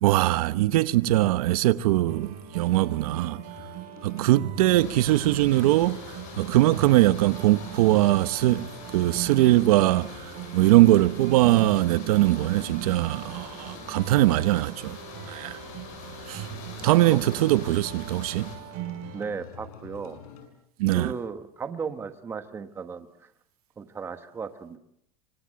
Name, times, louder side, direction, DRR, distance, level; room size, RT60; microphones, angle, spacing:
voice 1, 0.0-3.4 4.0-8.7 8.9-15.0 15.3-15.6 16.3-16.5 16.8-18.5 20.8-21.1, right 16 dB, 75° right, 1.0 m, -21 dB
sound 1, 2.1-19.3, right 11 dB, 45° right, 5.9 m, -41 dB
sound 2, 2.2-20.5, left 6 dB, 75° left, 6.7 m, -49 dB
sound 3, 4.7-18.6, left 6 dB, 40° left, 7.7 m, -44 dB
voice 2, 19.1-20.2 20.9-23.3 23.8-24.8, right 5 dB, 15° right, 1.3 m, -35 dB
27.0 x 25.5 x 7.6 m
supercardioid pair, 180°, 19 cm